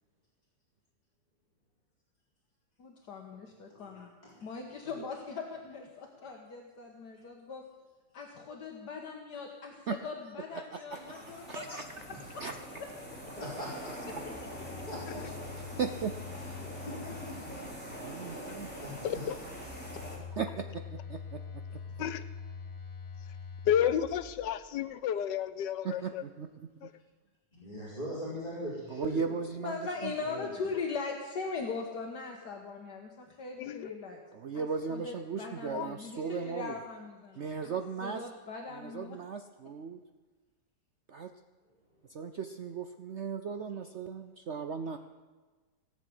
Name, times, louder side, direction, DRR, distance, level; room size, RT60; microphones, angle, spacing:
voice 1, 2.8-4.1 4.4-7.6 8.1-11.8 12.1-12.2 29.6-34.2 34.5-39.2, left 4 dB, 70° left, 1 dB, 1.9 m, -40 dB
voice 2, 3.7-4.5 12.1-12.2 13.4-13.9 14.9-15.2 16.9-17.6 18.3-18.4 18.7-19.2 27.5-29.3 30.2-30.7, equal, 20° left, -8 dB, 4.3 m, -41 dB
voice 3, 10.5-11.2 11.5-12.1 12.4-12.6 15.8-16.1 18.0-18.7 20.3-21.8 25.8-26.9 28.9-30.1 34.3-36.8 37.4-38.3 38.7-40.0 41.1-41.3 42.1-45.0, right 6 dB, 60° right, 8 dB, 0.8 m, -37 dB
sound 1, 10.9-20.2, equal, 5° left, 3.7 m, -44 dB
Telephone, 14.1-18.1 19.2-24.9, left 6 dB, 50° left, 0.3 m, -45 dB
voice 4, 19.0-19.4 22.0-22.2 23.7-26.2 26.8-26.9 33.6-33.9 35.7-35.9, left 9 dB, 90° left, 13 dB, 1.4 m, -31 dB
18.0 x 7.4 x 9.6 m, 1.3 s
omnidirectional pair, 1.9 m